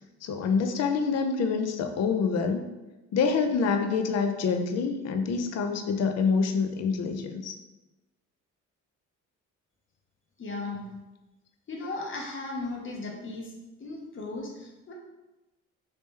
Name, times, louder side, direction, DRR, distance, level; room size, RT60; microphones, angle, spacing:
voice 1, 0.2-2.6 3.1-7.6, left 5 dB, 60° left, 5 dB, 0.5 m, -26 dB
voice 2, 10.4-10.8 11.7-13.5 13.8-14.9, left 2 dB, 40° left, 0 dB, 0.9 m, -36 dB
3.1 x 2.8 x 3.6 m, 1.0 s
cardioid pair, 90°, 30 cm